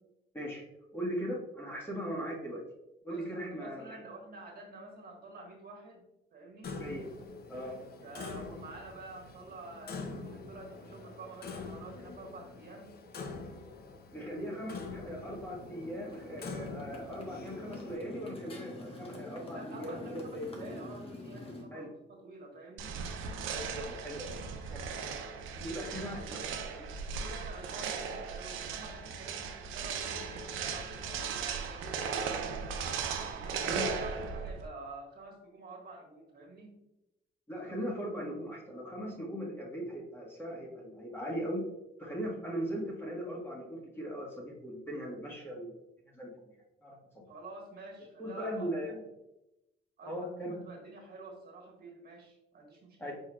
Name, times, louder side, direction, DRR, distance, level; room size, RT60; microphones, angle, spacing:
voice 1, 0.9-2.6 3.0-4.0 6.8-7.0 7.5-7.8 14.1-20.5 21.7-21.9 23.5-24.4 24.7-24.8 25.6-26.4 26.7-26.9 33.7-33.8 37.5-41.6 42.0-45.7 46.1-46.3 46.8-47.2 48.2-48.9 50.0-50.5 53.0-53.1, equal, 10° left, -4 dB, 1.5 m, -39 dB
voice 2, 3.1-6.0 6.3-6.8 8.0-12.9 19.5-23.0 25.5-26.5 27.2-32.6 33.1-36.8 47.3-49.0 50.0-53.1, right 2 dB, 50° right, 1 dB, 1.4 m, -49 dB
Clock, 6.6-18.0, left 4 dB, 50° left, 0.6 m, -45 dB
Motorcycle, 14.4-21.6, left 1 dB, 30° left, 1.1 m, -46 dB
sound 1, 22.8-34.7, right 5 dB, 85° right, 0.6 m, -37 dB
4.7 x 4.5 x 2.3 m, 0.92 s
cardioid pair, 90°, 20 cm